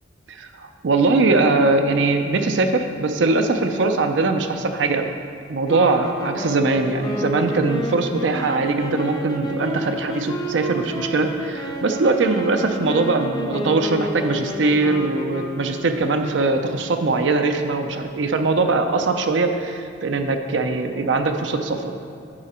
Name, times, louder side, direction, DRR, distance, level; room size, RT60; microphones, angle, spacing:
voice 1, 0.3-5.1 5.5-21.9, right 3 dB, 75° right, 6 dB, 0.5 m, -21 dB
sound 1, 5.7-16.1, equal, 20° left, 0.6 m, -30 dB
8.7 x 4.9 x 4.3 m, 2.4 s
head